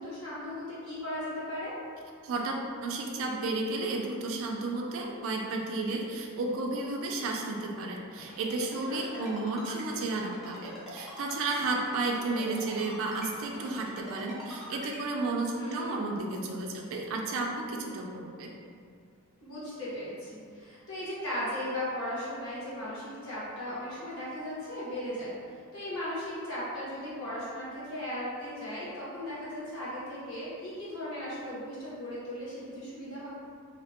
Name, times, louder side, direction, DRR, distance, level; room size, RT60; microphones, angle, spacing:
voice 1, 0.0-1.8 8.9-9.3 15.6-16.0 19.4-33.3, left 1 dB, 65° left, -10 dB, 1.2 m, -37 dB
voice 2, 2.2-2.5 2.8-18.5, right 3 dB, 65° right, 1 dB, 0.4 m, -32 dB
Ringtone, 8.2-15.0, equal, ahead, 0.6 m, -44 dB
2.8 x 2.1 x 2.8 m, 2.2 s
head